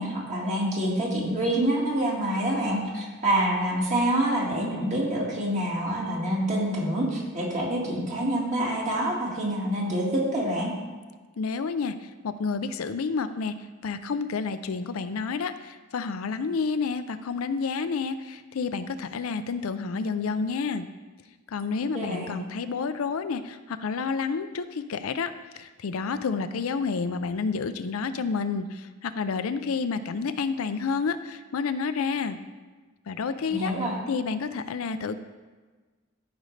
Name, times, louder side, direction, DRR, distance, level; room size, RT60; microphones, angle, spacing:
voice 1, 0.0-10.7 21.9-22.3 33.5-34.0, right 1 dB, 35° right, -3 dB, 1.9 m, -26 dB
voice 2, 11.4-13.6 13.8-20.8 21.5-32.4 33.1-33.7 34.1-35.2, left 5 dB, 85° left, 10 dB, 0.5 m, -29 dB
13.5 x 5.2 x 3.2 m, 1.3 s
head